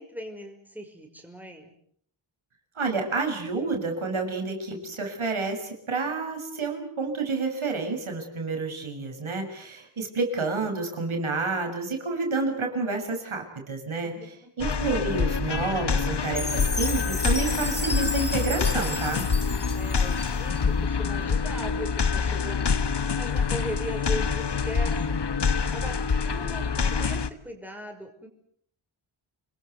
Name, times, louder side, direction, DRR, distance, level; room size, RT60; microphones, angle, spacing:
voice 1, 0.0-1.7 14.0-14.3 19.3-28.3, equal, 5° right, 3 dB, 5.7 m, -39 dB
voice 2, 2.8-14.1 14.6-19.3, right 3 dB, 75° right, 4 dB, 6.9 m, -29 dB
sound 1, 14.6-27.3, left 5 dB, 55° left, 1.5 m, -26 dB
Chime, 16.4-20.6, left 2 dB, 20° left, 6.2 m, -33 dB
29.0 x 21.5 x 8.1 m, 0.66 s
wide cardioid pair, 115°, 49 cm